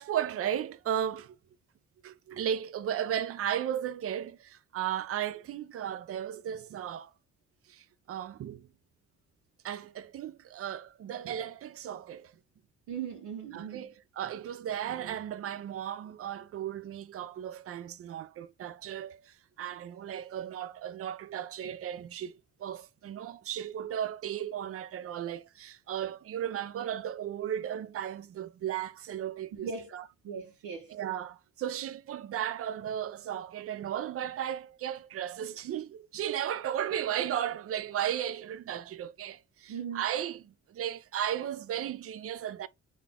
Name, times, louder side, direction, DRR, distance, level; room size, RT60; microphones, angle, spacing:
voice 1, 0.0-1.4 2.0-7.1 7.7-8.7 9.6-12.3 13.5-30.0 30.9-42.7, right 10 dB, 50° right, 0.4 m, -35 dB
voice 2, 12.9-13.9 29.6-29.9 30.2-30.9 39.7-40.1, right 6 dB, 80° right, 0.8 m, -38 dB
3.9 x 2.3 x 3.5 m
cardioid pair, 90°, 30 cm